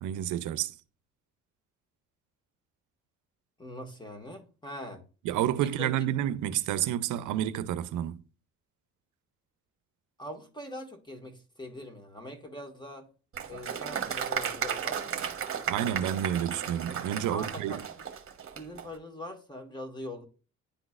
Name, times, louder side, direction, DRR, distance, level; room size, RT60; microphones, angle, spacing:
voice 1, 0.0-0.7 5.2-8.2 15.7-17.9, right 11 dB, 85° right, 0.6 m, -30 dB
voice 2, 3.6-5.0 5.6-6.0 10.2-13.1 13.5-15.3 17.3-18.1 18.5-20.3, left 1 dB, 15° left, 1.7 m, -42 dB
Applause, 13.3-18.9, right 8 dB, 45° right, 1.1 m, -34 dB
10.0 x 3.9 x 2.4 m
cardioid pair, 90°, 30 cm